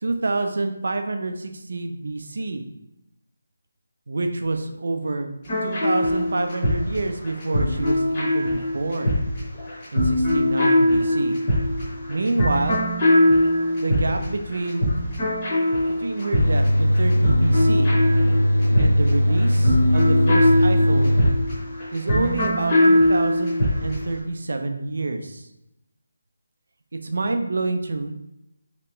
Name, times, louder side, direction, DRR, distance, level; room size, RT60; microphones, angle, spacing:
voice 1, 0.0-2.6 4.1-5.3 5.6-9.2 9.9-11.4 12.1-12.8 13.8-14.9 16.0-17.9 18.8-21.2 21.9-25.5 26.9-28.1, right 2 dB, 55° right, 6 dB, 0.4 m, -27 dB
sound 1, 5.5-24.1, left 1 dB, 15° left, 0.8 m, -21 dB
sound 2, 16.3-21.3, equal, 85° left, 0.4 m, -19 dB
3.3 x 2.9 x 3.0 m, 0.87 s
figure-of-eight pair, 180°, 0 cm